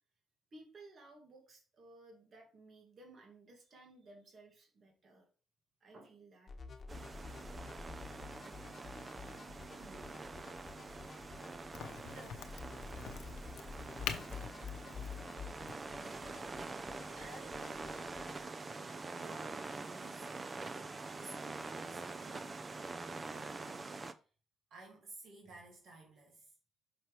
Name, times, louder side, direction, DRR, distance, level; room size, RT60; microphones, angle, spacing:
voice 1, 0.5-5.3 5.8-6.5 6.9-7.1 7.6-7.7, right 2 dB, 50° right, 2.2 m, -58 dB
sound 1, 6.5-18.4, left 5 dB, 40° left, 1.1 m, -50 dB
sound 2, 6.9-24.1, right 3 dB, 30° right, 0.5 m, -45 dB
voice 2, 9.8-10.2 12.0-12.5 17.1-18.0 19.1-22.6 23.3-24.2 24.7-26.5, right 2 dB, 65° right, 2.0 m, -55 dB
Crack, 11.7-17.2, left 9 dB, 90° left, 0.8 m, -47 dB
6.1 x 5.7 x 3.2 m
cardioid pair, 90°, 0 cm